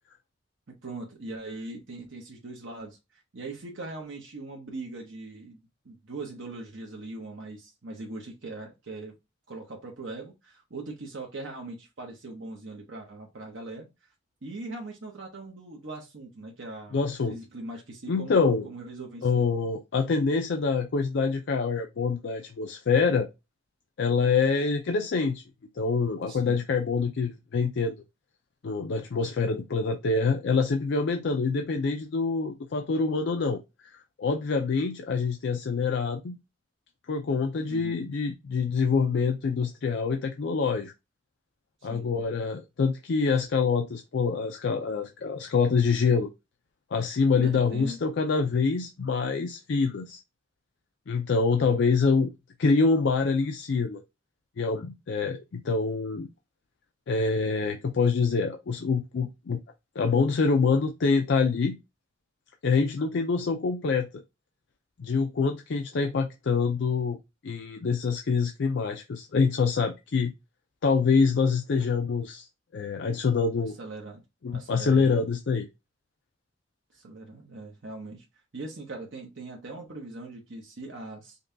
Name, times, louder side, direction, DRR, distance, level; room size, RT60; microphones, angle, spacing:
voice 1, 0.7-9.2 9.5-13.9 14.4-19.4 26.3-26.6 37.7-38.0 41.8-42.1 47.3-48.0 51.5-51.8 73.8-74.2 74.5-75.1 76.9-78.2 78.5-81.4, right 2 dB, 80° right, 0.9 m, -41 dB
voice 2, 16.9-17.4 18.1-18.7 19.2-23.3 24.0-25.4 25.7-28.0 28.6-33.6 33.9-36.4 37.1-40.9 41.8-46.3 46.9-50.2 51.1-52.3 52.6-54.0 54.6-56.3 57.1-59.6 60.0-61.8 62.6-64.1 65.0-67.2 67.4-70.3 70.8-72.5 72.7-73.8 74.4-75.7, left 4 dB, 70° left, 0.4 m, -25 dB
5.2 x 2.3 x 2.6 m
head